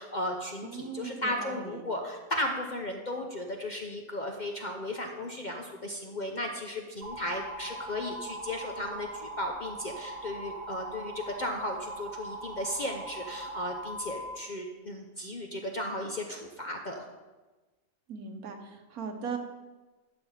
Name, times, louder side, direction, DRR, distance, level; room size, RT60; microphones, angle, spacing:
voice 1, 0.0-17.0, left 1 dB, 45° left, 2 dB, 0.6 m, -35 dB
voice 2, 0.6-1.8 18.1-19.4, right 6 dB, 75° right, 5 dB, 1.5 m, -39 dB
sound 1, 7.0-14.4, right 1 dB, 45° right, 1.0 m, -41 dB
11.5 x 4.1 x 7.2 m, 1.2 s
omnidirectional pair, 1.5 m